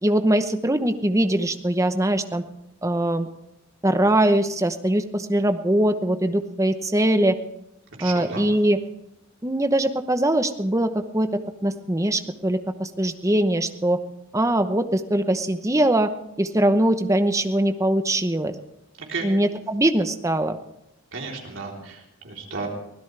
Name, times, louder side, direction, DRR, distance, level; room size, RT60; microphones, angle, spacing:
voice 1, 0.0-2.4 2.8-3.3 3.8-7.4 8.0-8.8 9.4-11.3 11.6-14.0 14.3-16.1 16.4-18.5 19.2-20.6, right 1 dB, 15° right, 8 dB, 0.9 m, -22 dB
voice 2, 8.0-8.5 19.1-19.3 21.1-22.7, right 4 dB, 65° right, -1 dB, 3.7 m, -33 dB
24.0 x 16.5 x 3.4 m, 0.84 s
head